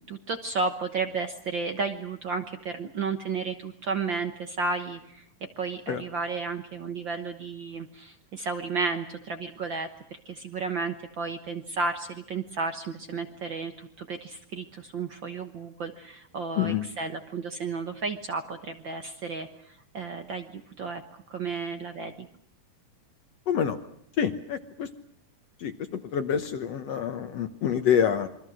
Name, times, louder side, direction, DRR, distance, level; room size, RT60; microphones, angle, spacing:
voice 1, 0.1-5.2 5.6-9.9 10.2-19.5 19.9-21.0 21.3-22.3, right 4 dB, 60° right, 7 dB, 1.2 m, -32 dB
voice 2, 16.6-16.9 23.5-23.8 24.2-24.9 25.6-28.3, left 8 dB, 65° left, 8 dB, 1.8 m, -27 dB
27.5 x 24.0 x 6.3 m, 0.72 s
omnidirectional pair, 3.9 m